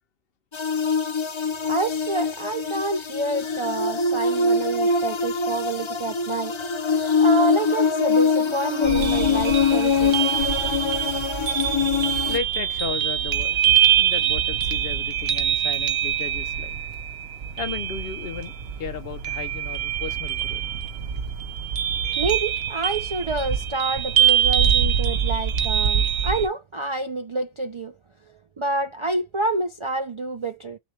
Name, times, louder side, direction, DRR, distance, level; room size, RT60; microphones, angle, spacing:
sound 1, 0.5-12.4, left 5 dB, 40° left, 0.4 m, -23 dB
voice 1, 1.6-6.5 6.8-10.4 10.6-10.9 22.2-27.9 28.6-30.8, right 3 dB, 45° right, 0.4 m, -28 dB
sound 2, 8.8-26.5, right 9 dB, 70° right, 0.9 m, -24 dB
voice 2, 12.3-16.7 17.6-20.6, left 7 dB, 65° left, 0.8 m, -34 dB
6.1 x 2.2 x 3.1 m
omnidirectional pair, 1.1 m